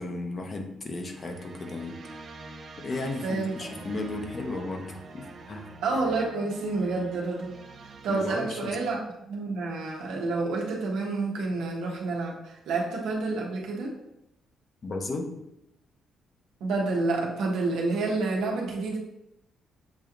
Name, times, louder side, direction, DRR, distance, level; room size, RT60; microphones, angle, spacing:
voice 1, 0.0-2.0 2.8-5.7 8.1-8.8 14.8-15.3, left 2 dB, 40° left, 3 dB, 0.8 m, -34 dB
sound 1, 1.0-8.2, right 3 dB, 55° right, 0.6 m, -46 dB
voice 2, 3.2-3.9 5.8-7.6 8.0-13.9 16.6-19.0, right 3 dB, 85° right, -1 dB, 1.0 m, -29 dB
6.9 x 2.9 x 2.5 m, 0.85 s
cardioid pair, 90°, 0 cm